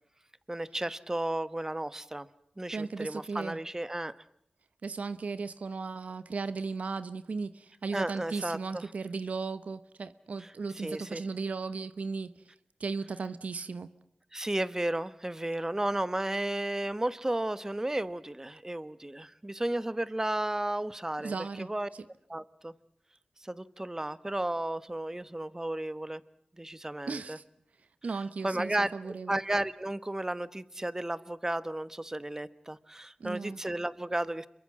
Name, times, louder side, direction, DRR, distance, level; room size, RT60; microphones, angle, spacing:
voice 1, 0.5-2.3 2.6-4.1 7.9-8.8 10.4-10.5 10.8-11.2 14.3-21.9 22.3-22.7 23.4-26.2 26.6-27.4 28.4-34.5, right 1 dB, 20° right, 16 dB, 1.2 m, -33 dB
voice 2, 2.7-3.6 4.8-12.3 12.8-13.9 21.2-22.0 27.1-27.4 28.0-29.4 33.2-33.6, right 4 dB, 85° right, 14 dB, 0.9 m, -36 dB
27.0 x 23.0 x 7.5 m, 0.71 s
wide cardioid pair, 55°, 2 cm